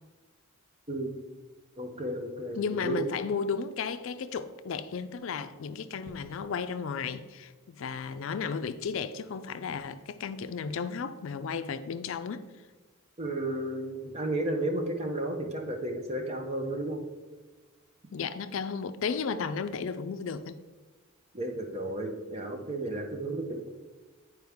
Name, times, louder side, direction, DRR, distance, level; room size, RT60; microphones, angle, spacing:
voice 1, 1.8-3.1 13.2-17.0 21.3-23.7, right 1 dB, 30° right, 0.8 m, -33 dB
voice 2, 2.6-12.5 18.1-20.6, left 5 dB, 65° left, 0.4 m, -34 dB
9.4 x 4.6 x 3.5 m
head